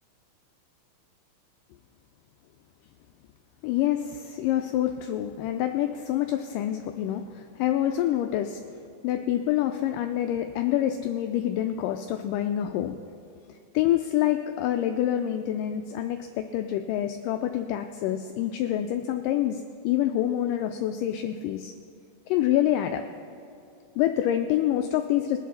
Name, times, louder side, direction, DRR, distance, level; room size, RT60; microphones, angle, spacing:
voice 1, 3.6-8.6 9.0-13.0 13.5-21.7 22.3-23.1 24.0-25.4, left 12 dB, 80° left, 6 dB, 2.0 m, -27 dB
21.5 x 7.6 x 4.0 m, 2.6 s
omnidirectional pair, 4.1 m